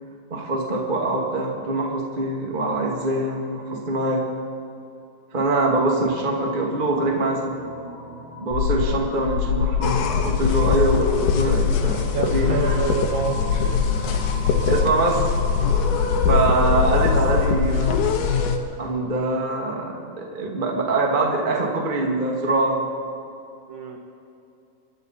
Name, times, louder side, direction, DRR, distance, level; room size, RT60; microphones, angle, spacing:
voice 1, 0.3-4.2 5.3-7.6 8.4-12.7 14.7-15.2 16.3-18.0 18.8-22.9, right 2 dB, 30° right, -1 dB, 0.8 m, -24 dB
sound 1, 5.4-17.6, right 2 dB, 15° right, 3.4 m, -38 dB
sound 2, 8.5-18.0, left 7 dB, 90° left, 3.1 m, -26 dB
sound 3, 9.8-18.6, left 6 dB, 70° left, 2.2 m, -23 dB
voice 2, 12.1-13.8 23.7-24.0, right 5 dB, 75° right, 2 dB, 1.6 m, -28 dB
26.0 x 12.0 x 4.2 m, 2.8 s
omnidirectional pair, 4.7 m